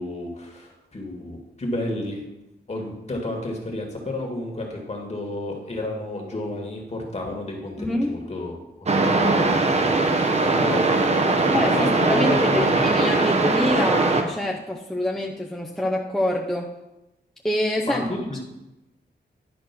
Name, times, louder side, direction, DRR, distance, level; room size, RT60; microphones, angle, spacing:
voice 1, 0.0-2.2 2.7-8.6 8.9-12.9 13.2-13.3 17.8-18.4, left 1 dB, 40° left, 1 dB, 2.0 m, -31 dB
voice 2, 7.8-8.1 11.5-16.7 17.4-18.1, left 1 dB, 5° left, -1 dB, 0.6 m, -26 dB
sound 1, 8.9-14.2, right 3 dB, 35° right, 0.9 m, -20 dB
10.5 x 4.6 x 6.0 m, 0.96 s
wide cardioid pair, 130°, 18 cm